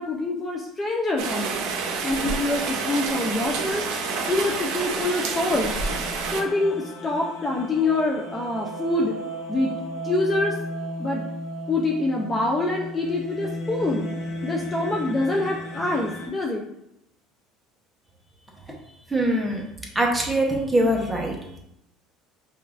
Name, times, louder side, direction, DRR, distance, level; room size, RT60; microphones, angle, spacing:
voice 1, 0.0-1.6 2.0-3.8 4.3-5.7 6.3-9.1 9.5-9.7 10.0-10.6 11.0-11.2 11.7-14.1 14.4-16.7, left 2 dB, 20° left, -2 dB, 0.5 m, -25 dB
Rain, 1.2-6.4, right 4 dB, 70° right, 0.6 m, -28 dB
sound 1, 1.7-16.3, equal, 55° left, 0.9 m, -36 dB
voice 2, 19.1-19.6 19.9-21.4, right 1 dB, 10° right, -1 dB, 0.8 m, -22 dB
5.2 x 2.5 x 2.4 m, 0.80 s
cardioid pair, 125°, 0 cm